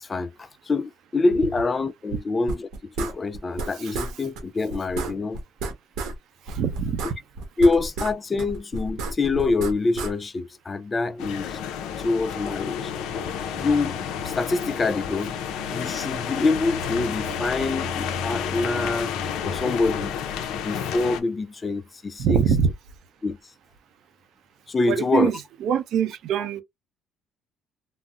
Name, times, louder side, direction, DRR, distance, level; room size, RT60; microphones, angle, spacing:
voice 1, 0.0-5.4 7.6-11.6 12.0-12.9 13.6-14.0 14.2-15.4 15.7-19.1 19.4-20.2 20.5-22.4 23.2-23.4 24.7-25.3, left 3 dB, 25° left, 0.3 m, -25 dB
sound 1, 2.5-3.7 3.9-4.1 4.4-4.5 4.7-6.1 6.5-8.1 8.4-10.1, right 3 dB, 85° right, 1.0 m, -31 dB
voice 2, 6.5-7.0 22.2-22.7 24.9-26.6, right 7 dB, 70° right, 0.6 m, -24 dB
sound 2, 11.2-21.2, left 7 dB, 85° left, 0.5 m, -30 dB
3.9 x 2.0 x 2.3 m
cardioid pair, 110°, 0 cm